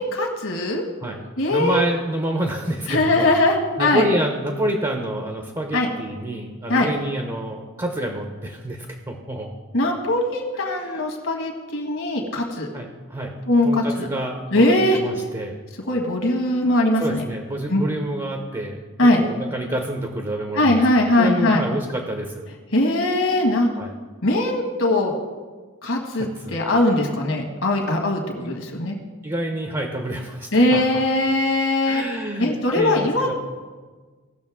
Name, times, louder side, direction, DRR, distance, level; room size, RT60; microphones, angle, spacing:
voice 1, 0.0-0.8 1.4-1.8 2.9-4.1 5.7-5.9 6.7-6.9 9.7-12.7 13.5-14.1 14.5-15.0 15.8-17.2 17.7-17.8 19.0-19.2 20.5-21.6 22.7-23.7 24.2-25.1 25.8-29.0 30.5-32.0 32.4-33.3, left 1 dB, 65° left, 1 dB, 1.8 m, -20 dB
voice 2, 1.5-3.3 3.8-9.5 10.7-11.0 12.7-13.4 13.6-14.7 14.9-15.6 17.0-18.8 19.2-20.8 21.2-22.5 23.8-23.9 26.1-26.6 28.4-28.5 29.2-31.0 31.8-33.3, right 1 dB, 20° right, 4 dB, 0.8 m, -28 dB
17.5 x 6.6 x 3.6 m, 1.4 s
head